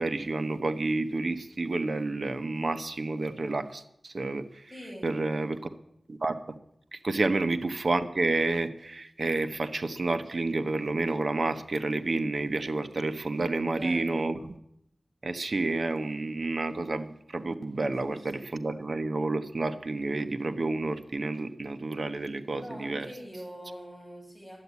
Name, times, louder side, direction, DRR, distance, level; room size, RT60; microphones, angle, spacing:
voice 1, 0.0-4.7 5.0-5.7 6.1-6.6 6.9-14.5 15.2-23.1, right 3 dB, 60° right, 9 dB, 1.1 m, -30 dB
voice 2, 4.7-5.1 7.3-7.4 13.7-14.2 18.1-18.5 22.6-24.6, equal, 5° right, -3 dB, 6.6 m, -43 dB
12.0 x 8.2 x 9.6 m, 0.74 s
wide cardioid pair, 65°, 0 cm